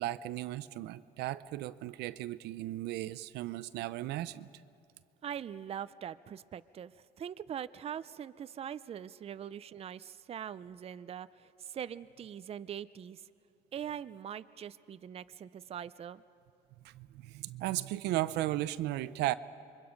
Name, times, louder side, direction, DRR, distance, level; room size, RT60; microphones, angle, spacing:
voice 1, 0.0-4.5 16.8-19.3, right 15 dB, 80° right, 15 dB, 0.6 m, -35 dB
voice 2, 5.2-6.9 7.2-13.2 13.7-16.2, right 9 dB, 35° right, 14 dB, 0.5 m, -42 dB
27.5 x 23.0 x 5.2 m, 2.6 s
cardioid pair, 110°, 17 cm